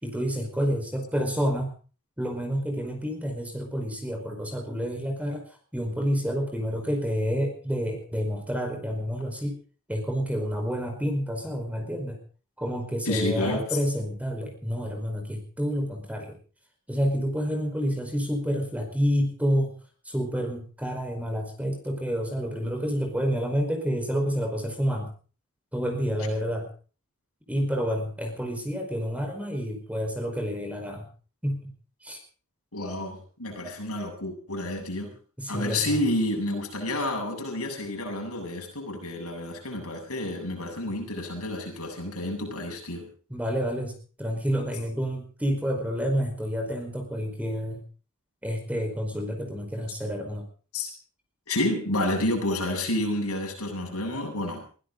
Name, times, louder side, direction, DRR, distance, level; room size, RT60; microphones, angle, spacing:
voice 1, 0.0-1.7 2.2-5.5 5.7-9.6 9.9-12.2 12.6-16.4 16.9-19.8 20.0-25.1 25.7-26.7 27.5-31.1 31.4-31.7 32.0-32.2 35.4-36.1 43.3-47.8 48.4-50.4, equal, 5° right, 4 dB, 4.9 m, -29 dB
voice 2, 13.1-13.6 32.7-35.1 35.5-43.1 50.7-50.9 51.5-54.7, left 1 dB, 85° left, 1 dB, 7.9 m, -29 dB
22.5 x 16.0 x 4.0 m, 0.39 s
head